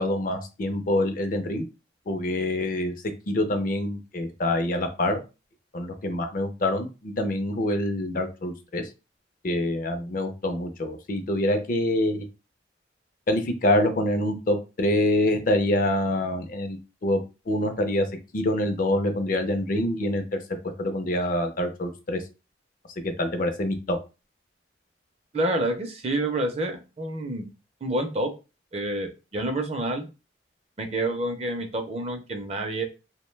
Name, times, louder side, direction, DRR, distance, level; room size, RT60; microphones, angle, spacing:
voice 1, 0.0-1.7 2.1-2.9 3.3-5.2 5.7-8.9 9.4-12.2 13.3-17.2 17.5-18.1 18.3-20.2 20.8-22.2 23.0-24.0, left 1 dB, 50° left, 6 dB, 0.4 m, -26 dB
voice 2, 25.3-27.5 27.8-28.3 28.7-30.1 30.8-32.8, right 1 dB, 35° right, 5 dB, 0.5 m, -28 dB
2.5 x 2.1 x 3.1 m, 0.29 s
head